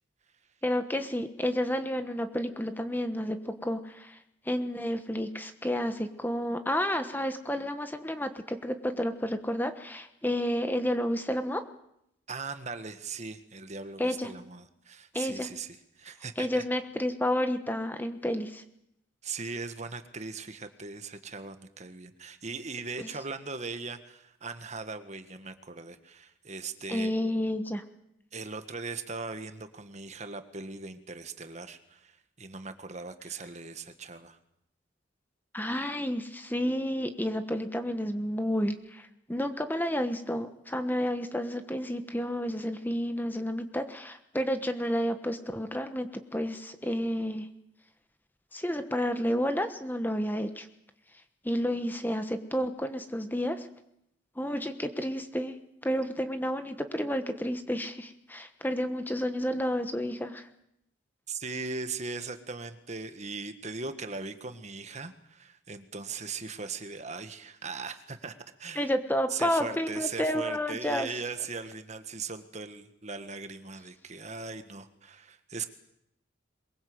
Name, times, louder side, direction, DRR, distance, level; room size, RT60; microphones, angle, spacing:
voice 1, 0.6-4.2 4.5-11.6 14.0-14.3 15.1-15.5 16.4-18.6 23.0-23.1 26.9-27.8 35.5-47.5 48.5-50.7 51.4-53.7 54.4-55.6 55.8-60.5 68.8-71.1, equal, 10° left, 8 dB, 1.2 m, -30 dB
voice 2, 12.3-16.6 19.2-27.1 28.3-34.4 61.3-68.3 68.6-68.9 69.3-75.7, right 4 dB, 35° right, 9 dB, 1.6 m, -39 dB
23.0 x 21.5 x 8.0 m, 0.78 s
head